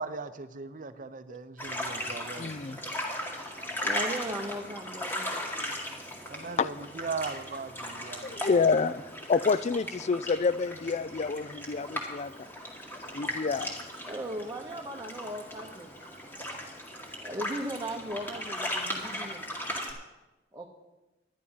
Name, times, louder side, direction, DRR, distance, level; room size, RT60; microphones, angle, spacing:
voice 1, 0.0-2.7 6.2-8.4, right 4 dB, 45° right, 12 dB, 0.7 m, -38 dB
sound 1, 1.6-19.9, left 1 dB, 10° left, 2.1 m, -37 dB
voice 2, 1.6-2.3 3.5-5.8 14.0-19.5 20.5-20.7, right 1 dB, 20° right, 0 dB, 0.9 m, -39 dB
voice 3, 2.4-2.8 6.3-6.7 8.2-9.0 9.3-12.5 13.1-13.8, left 4 dB, 35° left, 17 dB, 0.4 m, -28 dB
11.0 x 11.0 x 5.6 m, 1.0 s
head